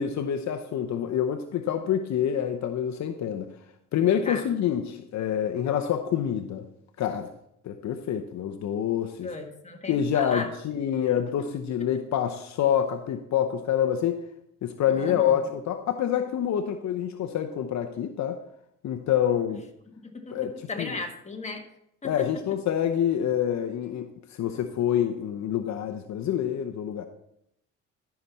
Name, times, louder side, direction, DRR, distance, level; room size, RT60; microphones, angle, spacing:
voice 1, 0.0-3.5 3.9-6.7 7.0-7.3 7.6-9.3 9.9-14.2 14.6-18.4 18.8-19.6 20.3-20.9 22.0-27.1, left 9 dB, 65° left, 7 dB, 0.8 m, -27 dB
voice 2, 9.2-10.5 11.1-11.2 14.9-15.4 20.0-21.6 22.0-22.3, left 3 dB, 20° left, 2 dB, 1.7 m, -36 dB
13.5 x 5.9 x 4.2 m, 0.75 s
cardioid pair, 90°, 30 cm